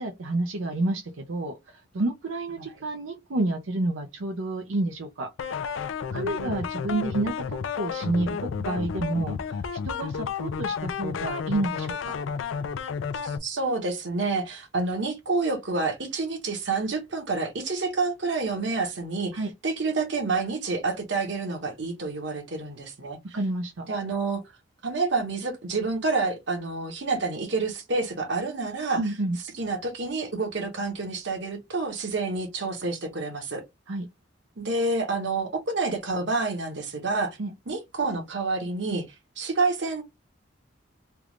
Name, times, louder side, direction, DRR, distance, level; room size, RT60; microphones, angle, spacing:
voice 1, 0.0-5.3 6.1-9.6 9.8-12.2 19.3-19.5 23.3-23.9 29.0-29.4 33.9-34.1 37.4-37.5, right 2 dB, 90° right, 0.6 m, -29 dB
sound 1, 5.4-13.4, left 6 dB, 80° left, 0.4 m, -31 dB
voice 2, 6.1-6.5 13.2-19.3 19.6-23.2 23.9-24.4 24.8-29.0 29.6-33.6 34.6-37.4 37.7-39.0 39.4-40.0, right 3 dB, 60° right, 1.1 m, -28 dB
3.4 x 2.5 x 3.1 m
head